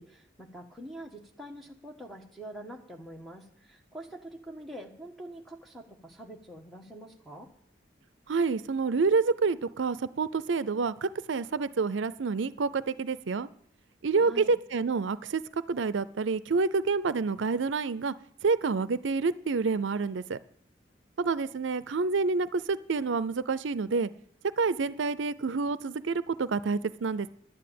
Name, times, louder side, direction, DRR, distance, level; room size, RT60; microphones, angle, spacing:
voice 1, 0.0-7.5 14.2-14.5, right 1 dB, ahead, 2 dB, 1.4 m, -45 dB
voice 2, 8.3-13.5 14.0-15.4 15.7-18.1 18.4-20.4 21.2-24.1 24.6-27.3, right 4 dB, 85° right, 16 dB, 0.5 m, -28 dB
11.0 x 9.9 x 8.5 m, 0.67 s
head